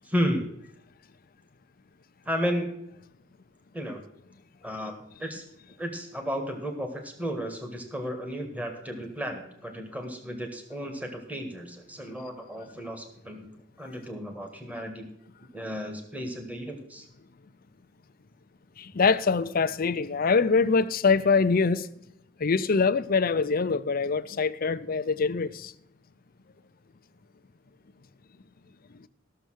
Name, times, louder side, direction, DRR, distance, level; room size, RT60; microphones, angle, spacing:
voice 1, 0.0-0.5 2.2-2.9 3.7-4.0 4.6-4.9 5.2-5.4 5.8-13.5 13.8-15.1 15.5-17.1, equal, 10° right, 1.6 m, -33 dB
voice 2, 18.8-21.9 22.4-25.7 28.9-29.1, left 4 dB, 50° left, 0.6 m, -24 dB
14.0 x 6.7 x 6.4 m
head